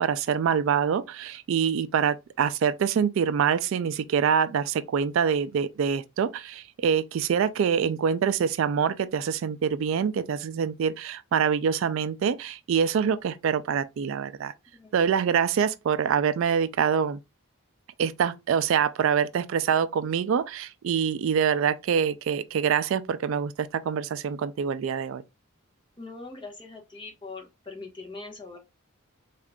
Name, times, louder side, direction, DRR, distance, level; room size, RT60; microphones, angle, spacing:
voice 1, 0.0-14.5 14.9-17.2 18.0-25.2, right 7 dB, 65° right, 0.3 m, -25 dB
voice 2, 14.7-15.1 26.0-28.6, left 3 dB, 25° left, 0.9 m, -42 dB
3.6 x 2.4 x 3.4 m
head